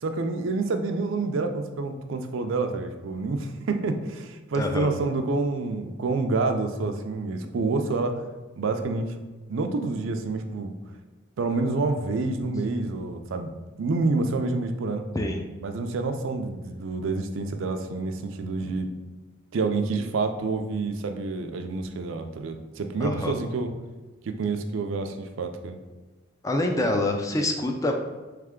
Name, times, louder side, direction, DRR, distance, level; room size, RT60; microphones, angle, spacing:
voice 1, 0.0-8.3 8.6-9.2 9.5-10.8 11.4-13.5 13.8-15.1 15.6-18.9 19.5-23.7 24.2-25.8, right 3 dB, 75° right, 6 dB, 0.4 m, -28 dB
voice 2, 4.5-4.9 15.1-15.4 23.0-23.3 26.4-27.9, left 1 dB, 15° left, 3 dB, 0.3 m, -26 dB
3.5 x 3.3 x 3.6 m, 1.3 s
head